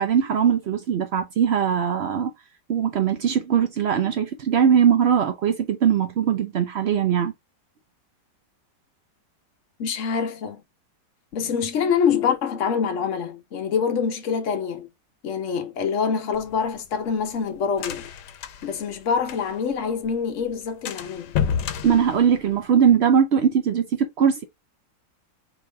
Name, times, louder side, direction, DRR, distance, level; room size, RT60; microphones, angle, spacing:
voice 1, 0.0-2.3 2.7-7.3 21.8-24.4, right 8 dB, 90° right, 0.5 m, -20 dB
voice 2, 9.8-10.6 11.3-14.9 15.2-18.1 18.6-21.3, left 6 dB, 50° left, 1.1 m, -25 dB
sound 1, 16.3-19.7 20.0-20.1 20.4-20.5 20.9-22.9, left 8 dB, 80° left, 1.3 m, -30 dB
4.6 x 3.0 x 3.3 m
omnidirectional pair, 1.9 m